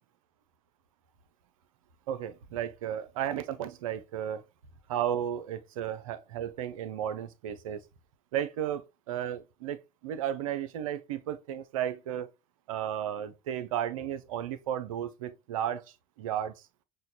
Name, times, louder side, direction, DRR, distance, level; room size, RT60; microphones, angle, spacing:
voice 1, 2.1-4.4 4.9-7.8 8.3-12.3 12.7-15.8 16.2-16.6, right 10 dB, 65° right, 0.4 m, -34 dB
6.3 x 2.2 x 2.3 m
figure-of-eight pair, 60°, 18 cm